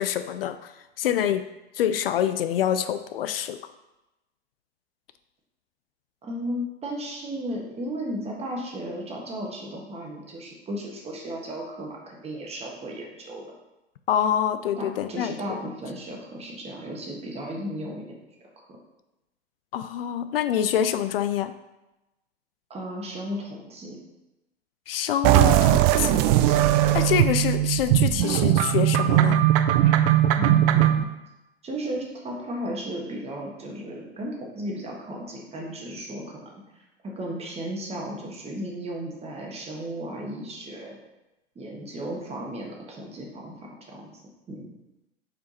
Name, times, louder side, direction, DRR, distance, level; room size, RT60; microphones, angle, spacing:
voice 1, 0.0-1.5 1.7-3.6 14.1-15.3 19.7-21.5 24.9-26.3 26.9-29.5, left 10 dB, 65° left, 10 dB, 0.4 m, -26 dB
voice 2, 6.2-13.4 14.8-18.2 18.6-18.7 22.7-24.0 30.4-31.1 31.6-36.5 37.0-41.0 41.5-44.1 44.5-44.7, equal, 20° right, -1 dB, 1.4 m, -35 dB
sound 1, 25.2-31.0, right 12 dB, 35° right, 0.4 m, -19 dB
5.0 x 4.5 x 4.2 m, 0.97 s
figure-of-eight pair, 95°, 31 cm